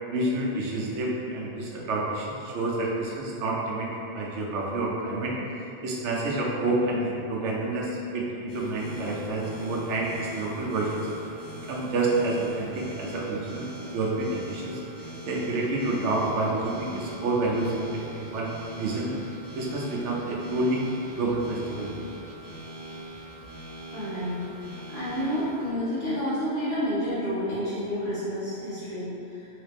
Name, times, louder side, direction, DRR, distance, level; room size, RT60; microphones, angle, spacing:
voice 1, 0.1-3.9 4.1-5.4 5.8-11.0 11.7-14.8 15.2-18.5 18.8-19.1 19.5-20.8 21.2-21.9, right 2 dB, 90° right, -3 dB, 0.9 m, -28 dB
sound 1, 8.5-25.7, right 1 dB, 55° left, 1.5 m, -42 dB
voice 2, 23.9-24.5 24.9-29.5, equal, 35° left, -14 dB, 1.0 m, -29 dB
3.2 x 2.8 x 3.3 m, 2.8 s
omnidirectional pair, 1.2 m